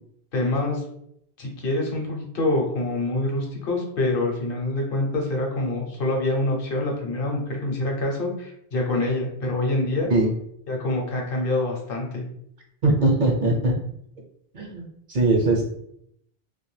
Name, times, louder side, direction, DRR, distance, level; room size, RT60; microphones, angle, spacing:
voice 1, 0.3-0.8 1.4-10.1 10.7-12.3, left 2 dB, 65° left, 0 dB, 0.8 m, -26 dB
voice 2, 12.8-13.8 14.5-15.7, right 2 dB, 55° right, 0 dB, 0.6 m, -21 dB
2.5 x 2.2 x 3.1 m, 0.73 s
omnidirectional pair, 1.0 m